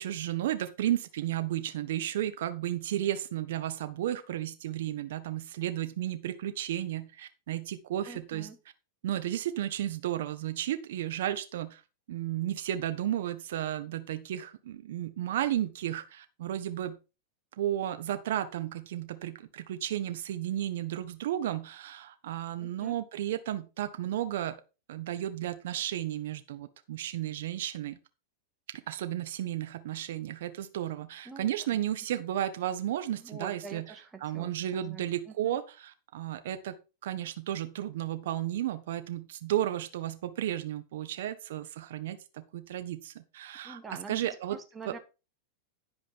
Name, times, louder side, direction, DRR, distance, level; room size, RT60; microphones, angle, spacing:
voice 1, 0.0-8.5 9.0-11.8 12.1-17.0 17.6-24.6 24.9-28.0 28.9-33.8 34.2-36.7 37.0-44.6, right 12 dB, 70° right, 9 dB, 1.2 m, -33 dB
voice 2, 8.1-8.6 22.6-23.0 31.3-32.2 33.2-35.6 43.6-45.0, right 4 dB, 15° right, 6 dB, 2.0 m, -46 dB
11.0 x 5.1 x 5.6 m, 0.30 s
hypercardioid pair, 120°, 0 cm